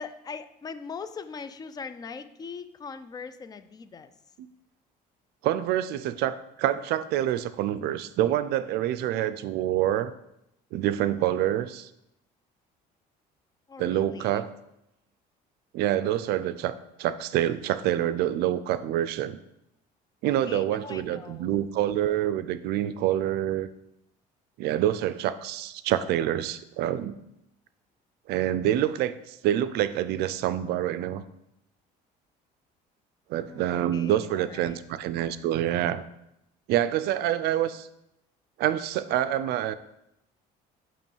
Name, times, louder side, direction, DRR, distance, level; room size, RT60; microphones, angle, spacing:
voice 1, 0.0-4.1 13.7-14.4 20.2-21.5 33.5-34.8, left 5 dB, 25° left, 11 dB, 0.4 m, -41 dB
voice 2, 5.4-10.1 10.7-11.9 13.8-14.5 15.7-19.4 20.2-23.7 24.6-27.1 28.3-31.2 33.3-36.0 36.7-37.9 38.6-39.7, right 12 dB, 70° right, 13 dB, 0.4 m, -27 dB
7.0 x 3.0 x 4.5 m, 0.84 s
cardioid pair, 110°, 17 cm